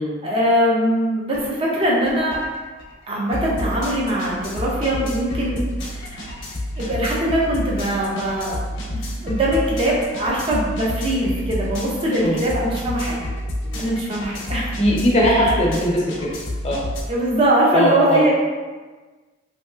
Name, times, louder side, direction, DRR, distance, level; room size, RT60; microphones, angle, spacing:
voice 1, 0.0-2.4 3.1-6.2 6.8-8.6 8.9-13.2 13.8-14.7 15.2-15.6 17.1-18.3, right 1 dB, 30° right, -4 dB, 0.6 m, -22 dB
sound 1, 1.3-1.5 1.8-17.0, left 1 dB, 85° left, 0.7 m, -30 dB
voice 2, 14.8-16.3 16.6-16.8 17.7-18.2, equal, 35° left, -4 dB, 0.6 m, -19 dB
3.0 x 2.7 x 2.4 m, 1.3 s
head